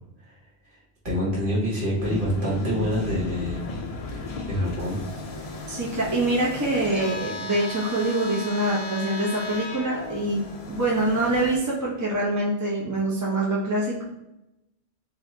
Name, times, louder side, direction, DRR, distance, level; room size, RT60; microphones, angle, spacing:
voice 1, 1.0-3.7 4.1-5.7, equal, 45° right, -5 dB, 1.6 m, -27 dB
sound 1, 2.0-11.6, left 3 dB, 45° left, 0.5 m, -35 dB
voice 2, 5.7-10.4 10.7-14.0, right 2 dB, 20° right, -4 dB, 0.7 m, -25 dB
4.3 x 2.8 x 3.3 m, 0.90 s
omnidirectional pair, 1.2 m